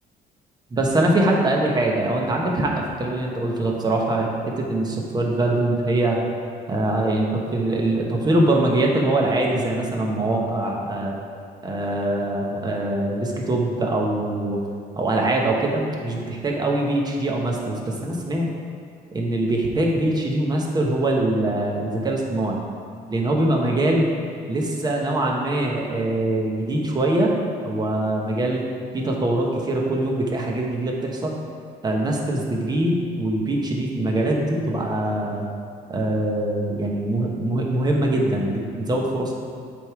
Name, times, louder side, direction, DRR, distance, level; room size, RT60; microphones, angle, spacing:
voice 1, 0.7-6.2 6.7-11.2 11.6-14.6 14.9-18.5 19.1-22.6 23.1-24.1 24.5-27.3 27.6-28.6 28.9-31.3 31.8-35.5 35.9-39.3, right 1 dB, 25° right, -1 dB, 1.1 m, -23 dB
7.7 x 3.6 x 4.8 m, 2.2 s
cardioid pair, 110°, 17 cm